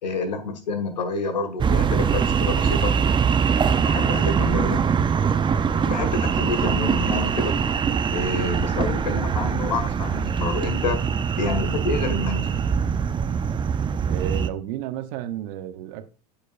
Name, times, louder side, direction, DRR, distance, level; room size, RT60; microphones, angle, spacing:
voice 1, 0.0-2.9 3.9-4.8 5.8-7.6 8.1-11.1 11.4-12.5, left 3 dB, 85° left, 1.6 m, -28 dB
sound 1, 1.6-14.5, right 6 dB, 20° right, 0.6 m, -23 dB
voice 2, 14.1-16.1, right 12 dB, 65° right, 0.9 m, -32 dB
8.5 x 6.6 x 2.5 m
hypercardioid pair, 85°, 21 cm